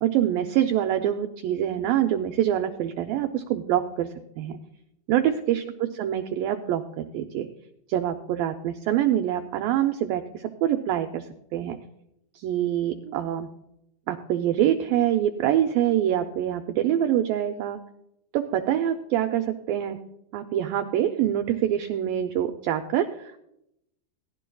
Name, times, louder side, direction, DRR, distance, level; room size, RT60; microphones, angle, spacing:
voice 1, 0.0-4.6 5.1-7.5 7.9-11.3 11.5-11.8 12.3-13.5 14.1-17.8 18.3-20.0 20.3-23.3, right 11 dB, 85° right, 6 dB, 2.0 m, -25 dB
18.5 x 12.0 x 2.3 m, 0.82 s
omnidirectional pair, 4.7 m